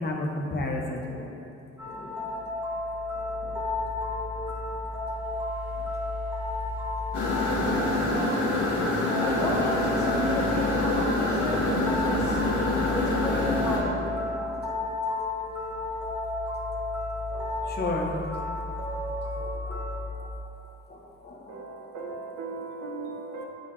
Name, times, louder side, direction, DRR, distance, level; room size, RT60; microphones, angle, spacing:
voice 1, 0.0-1.5 1.9-2.3 3.4-3.5 17.8-18.1 19.4-20.3 20.9-21.6, left 2 dB, 35° left, 0 dB, 1.0 m, -33 dB
sound 1, 1.8-20.1, left 2 dB, 5° right, 1.3 m, -32 dB
sound 2, 7.1-13.8, left 2 dB, 80° left, 1.4 m, -26 dB
voice 2, 9.2-12.4 12.9-14.6, left 1 dB, 10° left, -4 dB, 1.4 m, -33 dB
voice 3, 17.3-19.2 21.5-23.5, right 3 dB, 65° right, -2 dB, 0.9 m, -40 dB
8.9 x 3.9 x 3.3 m, 2.6 s
cardioid pair, 90°, 30 cm